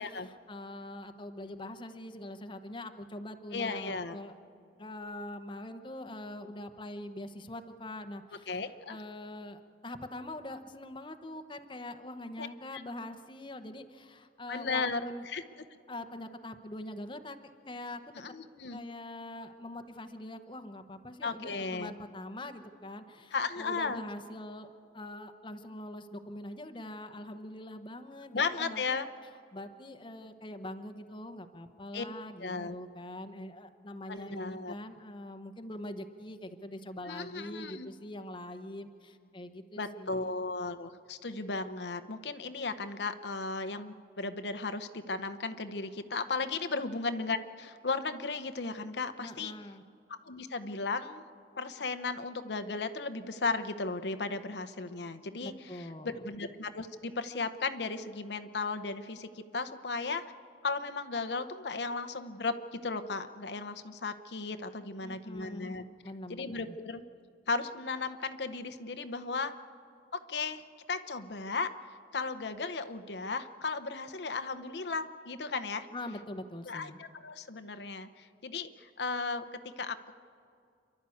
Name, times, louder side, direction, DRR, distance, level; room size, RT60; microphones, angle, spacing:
voice 1, 0.0-4.3 4.8-15.2 15.9-18.0 18.7-24.7 24.9-29.0 29.5-40.5 49.2-49.8 55.4-56.2 65.0-66.8 75.9-77.0, left 1 dB, 30° left, 8 dB, 0.9 m, -43 dB
voice 2, 3.5-4.2 8.5-9.0 12.4-12.5 14.5-15.4 18.1-18.8 21.2-21.9 23.3-24.0 28.3-29.1 31.9-32.1 32.4-32.7 34.1-34.7 37.1-37.9 39.8-49.5 50.2-51.2 51.6-55.5 56.0-60.2 60.6-65.8 66.3-67.0 67.5-69.5 70.1-75.9 76.7-80.1, left 4 dB, 75° left, 10 dB, 0.8 m, -35 dB
29.0 x 12.0 x 8.5 m, 2.4 s
head